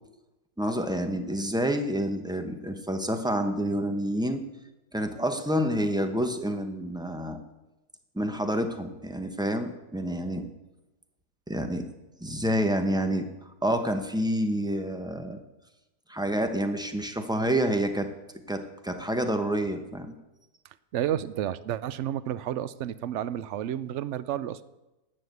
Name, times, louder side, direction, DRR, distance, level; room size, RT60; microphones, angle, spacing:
voice 1, 0.6-4.4 4.9-7.4 8.1-10.5 11.5-11.9 12.2-13.3 13.6-15.4 16.1-18.1 18.5-20.1, equal, 5° right, 6 dB, 0.7 m, -28 dB
voice 2, 20.9-24.6, right 11 dB, 70° right, 15 dB, 0.7 m, -31 dB
12.0 x 7.6 x 8.0 m, 0.99 s
omnidirectional pair, 1.7 m